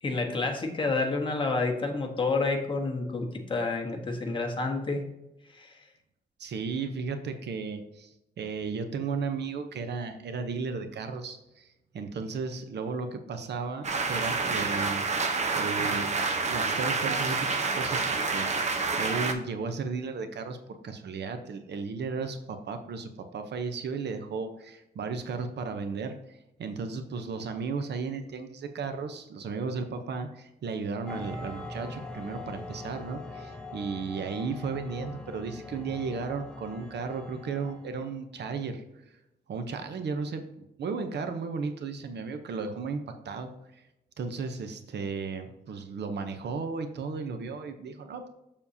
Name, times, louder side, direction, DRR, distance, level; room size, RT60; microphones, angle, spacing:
voice 1, 0.0-5.1 5.5-5.7, left 3 dB, 30° left, 1 dB, 1.1 m, -29 dB
voice 2, 6.4-11.7 11.9-15.0 15.5-38.8 39.5-43.8 44.2-48.3, right 4 dB, 85° right, 7 dB, 0.7 m, -35 dB
sound 1, 13.8-19.3, right 4 dB, 40° right, 0.8 m, -28 dB
sound 2, 31.1-38.1, left 2 dB, 5° left, 0.7 m, -42 dB
7.0 x 7.0 x 2.7 m, 0.90 s
wide cardioid pair, 165°, 17 cm